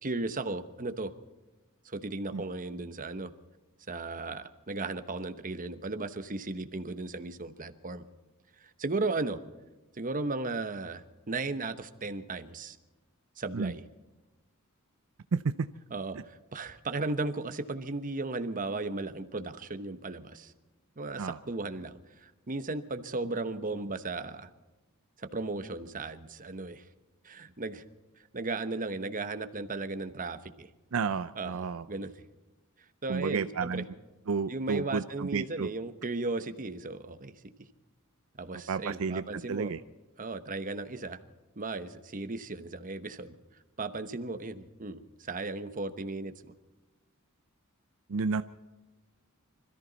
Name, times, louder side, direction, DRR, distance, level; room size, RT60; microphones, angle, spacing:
voice 1, 0.0-1.1 1.8-3.3 3.9-8.0 8.6-9.4 9.9-12.8 13.4-13.8 15.9-20.5 21.0-24.5 25.2-26.8 27.2-27.8 28.3-30.7 31.4-32.1 33.0-33.8 34.5-37.3 38.4-39.7 40.2-41.2 41.6-43.3 43.8-46.5, right 3 dB, 40° right, 9 dB, 1.0 m, -36 dB
voice 2, 15.3-15.7 21.2-21.4 30.9-31.9 33.1-33.8 34.3-35.7 38.7-39.8 48.1-48.4, right 5 dB, 70° right, 12 dB, 0.5 m, -31 dB
25.5 x 14.0 x 4.0 m, 1.1 s
head